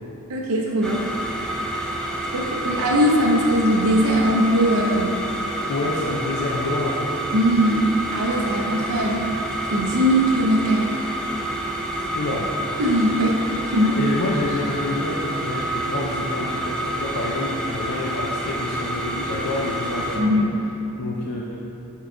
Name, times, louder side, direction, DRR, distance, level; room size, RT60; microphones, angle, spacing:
voice 1, 0.3-1.1 2.3-5.2 7.3-9.2 9.7-10.9 12.8-13.4 13.6-14.0 20.1-20.5, equal, 70° right, -2 dB, 0.7 m, -20 dB
sound 1, 0.8-20.2, right 1 dB, 5° left, 0.6 m, -28 dB
voice 2, 5.7-7.2 11.9-12.5 14.0-20.5 21.0-21.6, left 2 dB, 85° left, -3 dB, 0.6 m, -28 dB
7.2 x 4.7 x 3.8 m, 3.0 s
head